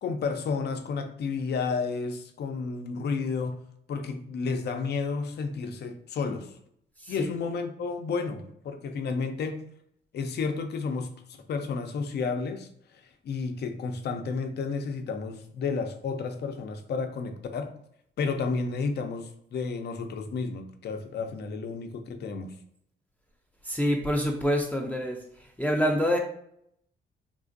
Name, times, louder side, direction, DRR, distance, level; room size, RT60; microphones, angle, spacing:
voice 1, 0.0-3.6 3.9-6.5 7.1-9.7 10.1-17.7 18.2-22.5, left 4 dB, 55° left, 6 dB, 0.5 m, -32 dB
voice 2, 23.6-25.2 25.6-26.2, equal, 10° left, 0 dB, 0.5 m, -26 dB
3.7 x 2.4 x 2.5 m, 0.70 s
cardioid pair, 90°, 20 cm